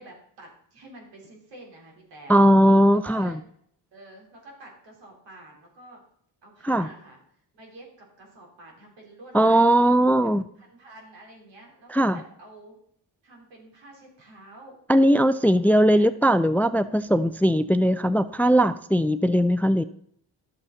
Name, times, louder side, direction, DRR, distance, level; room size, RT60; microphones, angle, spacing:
voice 1, 0.0-2.4 2.9-3.4 3.9-6.0 6.4-7.2 7.5-9.7 10.6-12.8 13.2-14.8 15.7-16.1, right 1 dB, 85° right, 0 dB, 3.6 m, -48 dB
voice 2, 2.3-3.4 6.6-6.9 9.3-10.4 11.9-12.2 14.9-19.8, equal, 5° left, 14 dB, 0.3 m, -19 dB
11.5 x 7.3 x 4.0 m, 0.66 s
cardioid pair, 80°, 42 cm